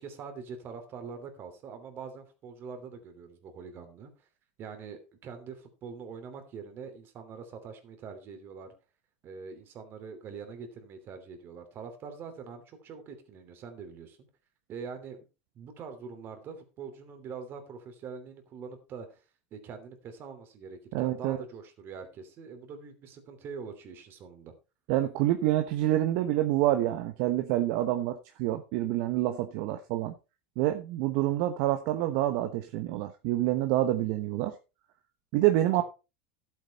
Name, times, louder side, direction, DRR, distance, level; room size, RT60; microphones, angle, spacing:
voice 1, 0.0-4.1 4.6-8.7 9.2-14.2 14.7-15.2 15.5-19.2 19.5-24.5, right 5 dB, 35° right, 3.0 m, -44 dB
voice 2, 20.9-21.4 24.9-30.1 30.6-34.5 35.3-35.8, right 14 dB, 60° right, 1.1 m, -27 dB
11.5 x 8.4 x 4.2 m
supercardioid pair, 135°, 6 cm